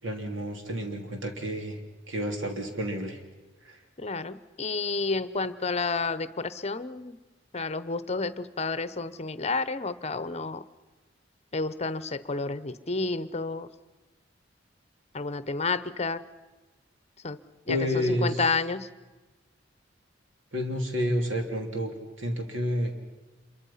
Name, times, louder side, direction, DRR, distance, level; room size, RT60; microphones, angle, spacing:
voice 1, 0.0-1.8 2.1-3.2 3.6-3.8 17.7-18.4 20.5-22.9, equal, 80° right, 4 dB, 3.2 m, -30 dB
voice 2, 4.0-7.2 7.5-10.6 11.5-13.7 15.1-16.2 17.2-17.4 17.7-18.9, left 3 dB, 35° left, 15 dB, 0.8 m, -30 dB
27.0 x 23.5 x 5.7 m, 1.2 s
head